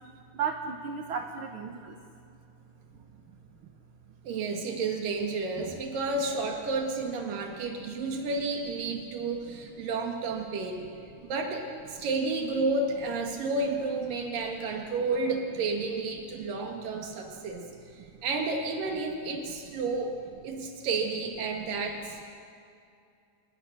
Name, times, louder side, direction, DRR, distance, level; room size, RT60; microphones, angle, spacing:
voice 1, 0.3-2.0 9.7-9.8 11.1-11.3 16.9-17.1 17.4-17.5, right 6 dB, 65° right, 5 dB, 1.3 m, -35 dB
voice 2, 4.2-10.9 11.3-20.1 20.4-22.2, right 3 dB, 80° right, 2 dB, 3.5 m, -31 dB
29.0 x 20.0 x 6.7 m, 2.4 s
omnidirectional pair, 3.8 m